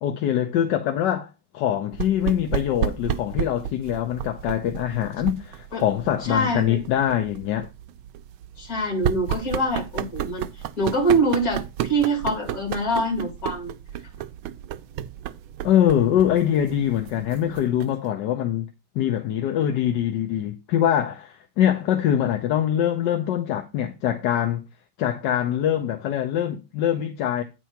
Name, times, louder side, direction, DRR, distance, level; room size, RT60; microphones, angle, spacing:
voice 1, 0.0-7.7 15.6-18.6 18.9-24.6 25.0-27.4, left 10 dB, 70° left, 1.3 m, -23 dB
sound 1, 1.9-18.1, right 10 dB, 85° right, 1.4 m, -33 dB
voice 2, 6.3-6.8 8.6-13.7, right 1 dB, 45° left, 3.2 m, -24 dB
9.1 x 4.7 x 5.7 m
omnidirectional pair, 2.2 m